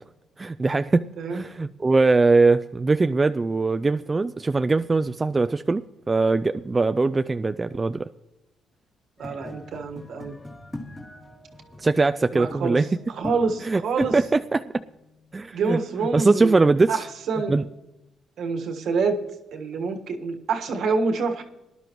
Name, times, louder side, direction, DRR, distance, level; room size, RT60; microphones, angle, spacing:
voice 1, 0.4-1.0 1.3-5.8 6.1-8.1 11.8-12.8 13.6-14.2 14.5-14.6 15.3-15.8 16.1-17.0 17.5-17.6, right 3 dB, 25° right, 10 dB, 0.3 m, -21 dB
sound 1, 9.2-15.5, left 1 dB, 15° left, 2.1 m, -42 dB
voice 2, 9.2-10.3 12.3-14.2 15.5-16.6 16.9-17.6 18.4-19.2 19.5-21.4, right 4 dB, 70° right, 5 dB, 1.5 m, -27 dB
19.0 x 11.0 x 3.0 m, 0.98 s
cardioid pair, 90°, 0 cm